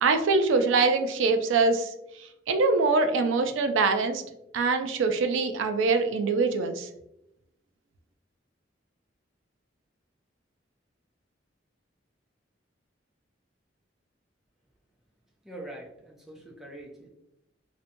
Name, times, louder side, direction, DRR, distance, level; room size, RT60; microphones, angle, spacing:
voice 1, 0.0-1.9 2.5-4.2 4.5-6.9, right 4 dB, 85° right, 7 dB, 0.3 m, -23 dB
voice 2, 15.5-17.1, right 1 dB, ahead, -1 dB, 0.4 m, -43 dB
2.6 x 2.1 x 2.5 m, 0.82 s
head